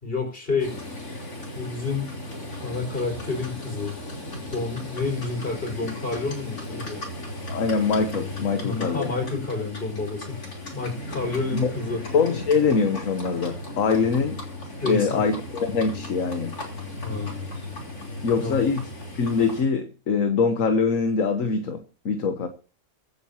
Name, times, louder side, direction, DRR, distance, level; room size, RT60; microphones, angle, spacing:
voice 1, 0.0-0.7 1.5-2.1 2.6-3.9 4.5-7.0 8.6-10.4 10.7-12.0 14.8-15.3 17.0-17.4 18.3-18.6, left 3 dB, 40° left, 5.8 m, -29 dB
Livestock farm animals working animals, 0.6-19.6, left 1 dB, 90° left, 3.9 m, -36 dB
voice 2, 7.5-9.1 11.5-11.7 12.1-14.4 14.8-16.5 18.2-18.9 19.1-22.5, left 5 dB, 65° left, 1.5 m, -23 dB
23.5 x 9.7 x 3.0 m
omnidirectional pair, 1.5 m